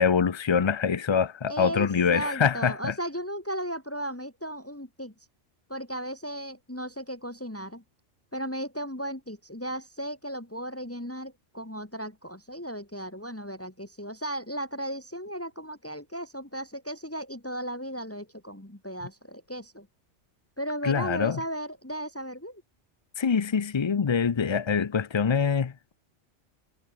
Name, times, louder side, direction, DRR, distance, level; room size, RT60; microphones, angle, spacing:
voice 1, 0.0-2.9 20.8-21.4 23.2-25.9, left 6 dB, 40° left, 0.4 m, -25 dB
voice 2, 1.5-5.1 5.7-7.8 8.3-19.9 20.6-22.6, equal, 10° left, 2.3 m, -35 dB
omnidirectional pair, 1.2 m